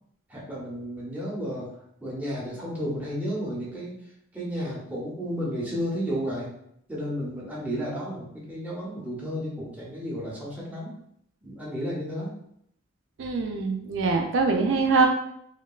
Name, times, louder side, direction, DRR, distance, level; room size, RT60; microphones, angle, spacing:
voice 1, 0.3-1.7 2.0-4.0 4.3-6.5 6.9-11.0 11.4-12.4, equal, 10° right, -6 dB, 0.6 m, -32 dB
voice 2, 13.2-15.1, right 4 dB, 70° right, 2 dB, 0.3 m, -23 dB
2.8 x 2.1 x 2.3 m, 0.73 s
head